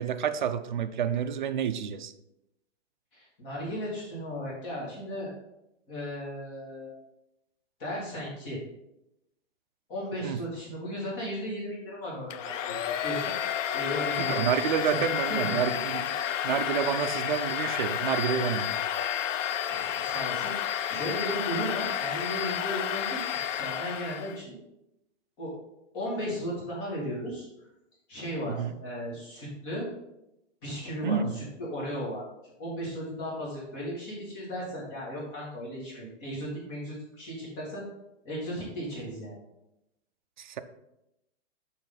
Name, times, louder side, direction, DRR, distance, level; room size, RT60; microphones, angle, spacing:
voice 1, 0.0-2.1 10.2-10.4 14.2-16.2 16.4-18.8 28.5-28.7 31.0-31.4 40.4-40.6, right 8 dB, 40° right, 9 dB, 0.4 m, -29 dB
voice 2, 3.1-5.3 5.9-7.0 7.8-8.6 9.9-13.3 13.7-15.6 19.7-24.6 25.4-25.5 25.9-27.5 28.1-28.5 28.8-29.9 30.6-32.2 32.6-37.8 38.2-39.4, equal, 25° left, -6 dB, 2.5 m, -36 dB
Domestic sounds home sounds, 12.3-24.4, left 10 dB, 80° left, 0.6 m, -31 dB
6.8 x 5.8 x 4.0 m, 0.88 s
hypercardioid pair, 175°, 37 cm